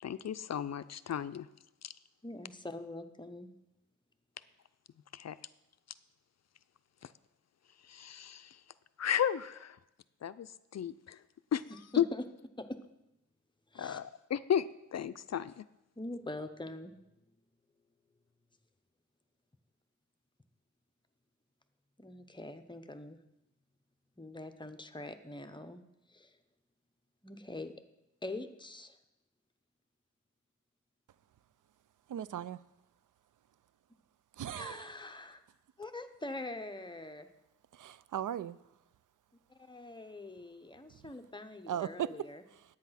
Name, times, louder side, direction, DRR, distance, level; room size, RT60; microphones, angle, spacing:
voice 1, 0.0-1.5 1.8-1.9 5.1-5.4 7.9-8.6 9.0-9.8 10.2-11.2 11.5-11.6 11.9-12.0 13.8-15.6, left 9 dB, 60° left, 14 dB, 0.5 m, -34 dB
voice 2, 2.2-3.5 11.9-12.2 12.6-12.8 13.7-14.0 16.0-17.0 22.0-23.2 24.2-25.8 26.1-26.3 27.2-27.7 28.2-29.0 34.5-35.4 35.8-37.3 39.6-42.4, left 2 dB, 15° left, 8 dB, 0.8 m, -43 dB
voice 3, 32.1-32.6 34.4-34.9 37.7-38.6 41.7-42.3 42.6-42.7, right 10 dB, 80° right, 18 dB, 0.5 m, -37 dB
10.5 x 8.7 x 5.7 m, 0.89 s
wide cardioid pair, 120°, 31 cm